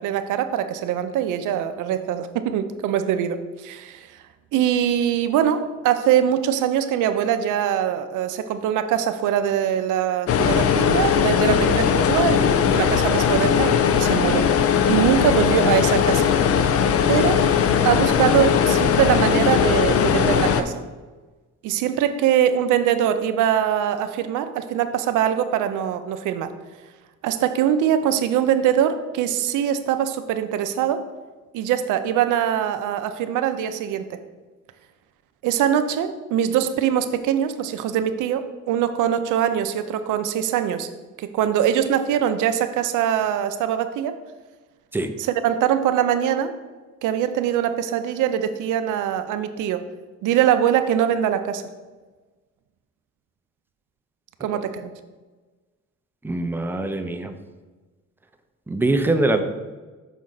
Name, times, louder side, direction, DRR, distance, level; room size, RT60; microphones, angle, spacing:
voice 1, 0.0-4.1 4.5-14.5 14.9-16.2 17.1-17.5 17.8-20.7 21.6-26.5 27.2-31.0 31.5-34.2 35.4-40.9 41.2-44.2 45.2-46.5 47.0-49.8 50.2-51.6 54.4-54.9, right 10 dB, 85° right, 10 dB, 0.5 m, -22 dB
sound 1, 10.3-20.6, left 7 dB, 50° left, 0.5 m, -19 dB
voice 2, 56.2-57.3 58.7-59.4, right 2 dB, 5° right, 6 dB, 0.5 m, -23 dB
6.1 x 4.2 x 3.9 m, 1.3 s
cardioid pair, 90°, 30 cm